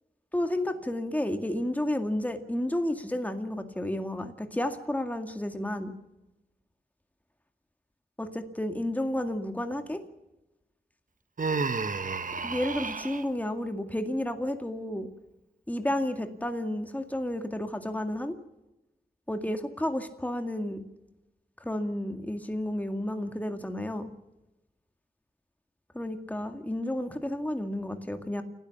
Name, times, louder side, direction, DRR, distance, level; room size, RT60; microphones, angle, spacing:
voice 1, 0.3-5.9 8.2-10.0 12.4-15.1 15.7-18.3 19.3-20.8 21.6-24.1 25.9-28.4, left 1 dB, 10° left, 6 dB, 2.0 m, -31 dB
Human voice, 11.4-13.3, right 4 dB, 55° right, 1.2 m, -31 dB
29.0 x 13.0 x 7.2 m, 0.94 s
wide cardioid pair, 70°, 16 cm